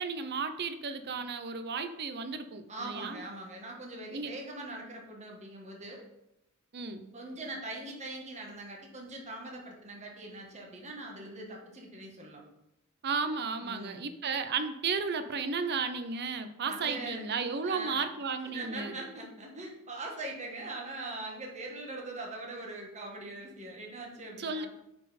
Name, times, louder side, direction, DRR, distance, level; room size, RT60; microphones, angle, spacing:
voice 1, 0.0-3.2 4.1-4.3 6.7-7.1 13.0-19.0 24.4-24.7, right 5 dB, 50° right, 10 dB, 0.6 m, -34 dB
voice 2, 2.7-6.0 7.1-12.4 13.6-14.1 16.7-17.3 17.6-18.1 18.5-24.7, right 2 dB, 30° right, -1 dB, 1.4 m, -42 dB
9.5 x 4.2 x 4.1 m, 0.85 s
head